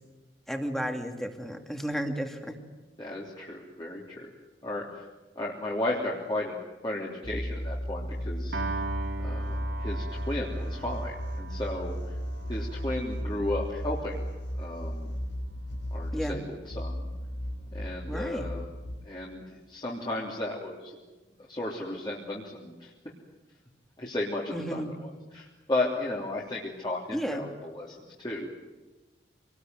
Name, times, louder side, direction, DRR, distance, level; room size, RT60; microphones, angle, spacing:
voice 1, 0.5-2.6 16.1-16.4 18.1-18.5 24.5-25.0 27.1-27.5, equal, ahead, 4 dB, 2.6 m, -33 dB
voice 2, 3.0-4.3 4.6-5.0 5.3-6.6 6.8-8.6 9.2-12.2 12.5-14.2 14.6-15.1 15.9-17.0 17.7-18.7 19.0-21.0 21.5-22.9 24.0-28.5, left 1 dB, 25° left, -4 dB, 3.2 m, -34 dB
sound 1, 7.2-19.0, equal, 80° left, 4.4 m, -35 dB
Piano, 8.5-14.9, right 4 dB, 85° right, 3.1 m, -41 dB
26.0 x 20.0 x 9.3 m, 1.1 s
head